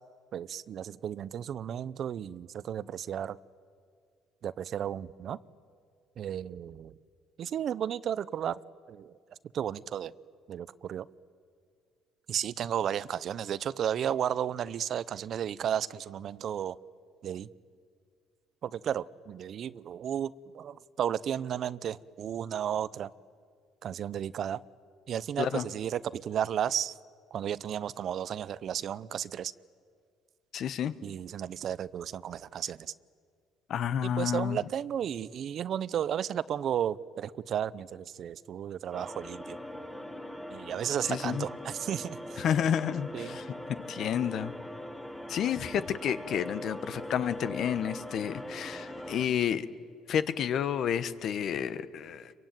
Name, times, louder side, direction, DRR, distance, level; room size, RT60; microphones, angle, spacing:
voice 1, 0.3-3.4 4.4-5.4 6.2-6.9 7.4-8.6 8.9-9.2 9.5-10.1 10.5-11.1 12.3-16.8 17.2-17.5 18.6-23.1 23.8-24.6 25.1-26.9 27.3-29.5 31.0-32.9 34.0-39.6 40.5-42.4 43.1-43.4, right 9 dB, 55° right, 19 dB, 0.7 m, -33 dB
voice 2, 30.5-30.9 33.7-34.6 41.1-41.4 42.4-43.5 43.9-44.5 45.3-49.7 50.1-52.3, left 9 dB, 60° left, 14 dB, 1.2 m, -30 dB
sound 1, 38.9-49.3, left 1 dB, ahead, 3.3 m, -41 dB
27.5 x 23.5 x 9.3 m, 2.2 s
cardioid pair, 95°, 0 cm